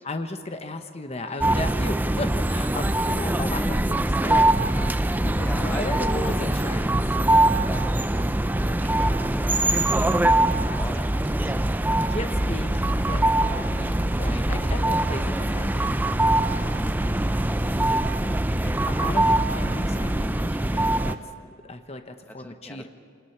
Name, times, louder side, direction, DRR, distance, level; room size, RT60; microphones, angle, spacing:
voice 1, 0.0-4.6 5.2-7.0 11.3-11.6 12.0-16.0 17.7-18.1 18.8-21.2 21.7-22.9, left 2 dB, 30° left, 7 dB, 1.0 m, -35 dB
sound 1, 1.4-21.2, right 1 dB, 10° right, 0.4 m, -23 dB
voice 2, 5.4-6.0 6.4-6.6 8.8-9.2 9.7-11.1 12.0-12.3 17.2-17.5 18.6-18.9 22.4-22.9, left 1 dB, 10° left, 6 dB, 1.0 m, -40 dB
sound 2, 6.9-12.1, right 2 dB, 75° right, 1.8 m, -49 dB
sound 3, 12.2-21.2, right 1 dB, 60° right, 1.2 m, -44 dB
25.5 x 19.5 x 5.8 m, 2.3 s
head